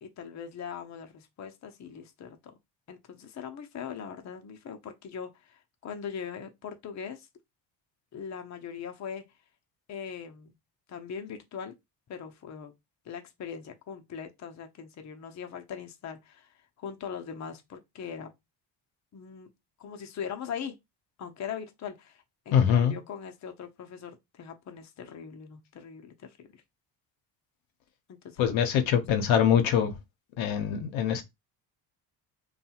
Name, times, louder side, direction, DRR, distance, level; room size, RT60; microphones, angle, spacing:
voice 1, 0.0-2.4 2.9-7.3 8.1-9.2 9.9-10.5 10.9-11.7 12.1-12.7 13.1-16.5 16.8-18.3 19.1-19.5 19.8-20.7 21.2-26.6 28.2-28.5, left 7 dB, 35° left, 0.6 m, -40 dB
voice 2, 22.5-23.0 28.4-29.9 30.4-31.2, left 8 dB, 70° left, 0.8 m, -23 dB
2.7 x 2.3 x 2.8 m
supercardioid pair, 70°, 49 cm